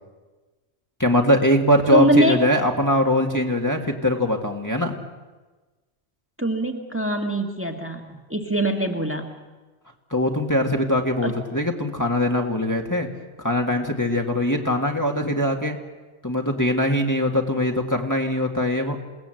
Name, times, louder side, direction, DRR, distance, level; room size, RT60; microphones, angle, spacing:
voice 1, 1.0-5.0 10.1-13.1 13.4-15.8 16.2-19.0, left 1 dB, 15° left, 2 dB, 1.8 m, -22 dB
voice 2, 1.9-2.4 6.4-9.3 11.2-11.4, right 1 dB, 10° right, 3 dB, 1.8 m, -23 dB
28.5 x 18.5 x 7.8 m, 1.3 s
omnidirectional pair, 1.2 m